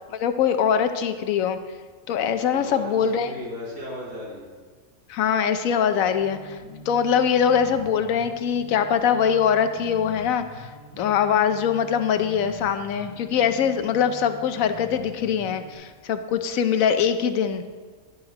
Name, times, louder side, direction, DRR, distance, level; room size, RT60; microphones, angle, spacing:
voice 1, 0.1-1.6 2.1-3.3 5.1-6.6 6.9-10.7 11.0-17.6, left 7 dB, 85° left, 9 dB, 1.1 m, -22 dB
voice 2, 2.5-4.6, left 1 dB, 75° right, -8 dB, 3.9 m, -36 dB
sound 1, 6.1-15.7, left 2 dB, 20° left, 2.0 m, -44 dB
11.5 x 10.5 x 2.9 m, 1.5 s
omnidirectional pair, 1.4 m